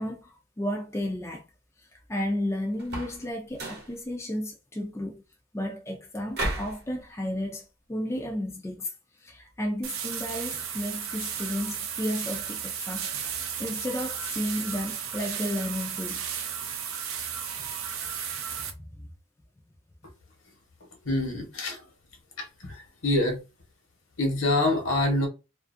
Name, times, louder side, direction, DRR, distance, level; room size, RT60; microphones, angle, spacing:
voice 1, 0.0-1.4 2.1-5.2 5.5-8.9 9.2-16.2 18.8-18.9, left 1 dB, 15° left, 0.3 m, -33 dB
sound 1, 2.8-3.2 3.5-3.9 6.3-6.8, right 1 dB, 50° right, 0.8 m, -32 dB
sound 2, 9.8-18.7, right 8 dB, 85° right, 0.6 m, -34 dB
voice 2, 21.0-21.8 22.4-23.4 24.2-25.3, left 1 dB, 70° left, 1.0 m, -26 dB
2.4 x 2.4 x 2.5 m
head